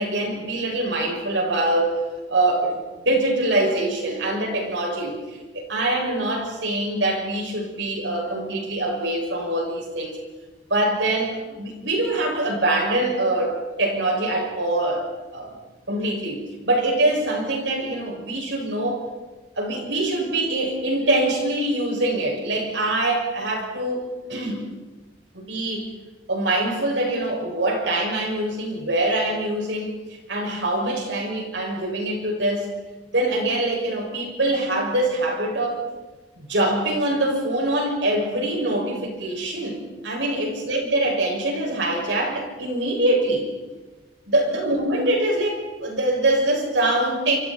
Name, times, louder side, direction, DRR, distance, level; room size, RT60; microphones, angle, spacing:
voice 1, 0.0-2.0 2.3-5.2 5.5-10.2 10.7-15.5 15.9-19.0 19.5-24.0 24.3-24.6 25.3-25.9 26.3-32.7 33.1-35.8 36.3-39.8 40.0-43.5 44.2-47.4, right 1 dB, 75° right, 0 dB, 6.8 m, -24 dB
28.0 x 26.5 x 4.6 m, 1.2 s
head